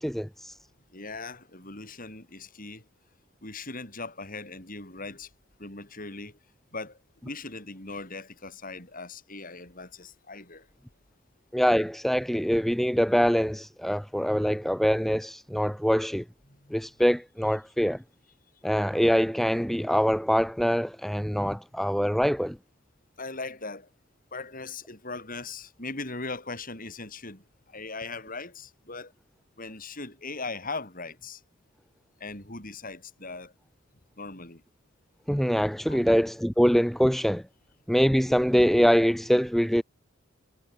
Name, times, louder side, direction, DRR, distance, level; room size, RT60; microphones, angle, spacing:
voice 1, 0.0-0.5 11.5-16.2 16.7-18.0 18.6-22.6 35.3-37.4 37.9-39.8, equal, ahead, 2.2 m, -24 dB
voice 2, 0.9-2.8 3.4-5.3 5.6-6.4 6.7-10.7 16.5-16.9 23.2-23.9 24.3-29.1 29.6-31.4 32.2-33.5 34.2-34.6 35.9-36.1, left 3 dB, 40° left, 7.8 m, -39 dB
head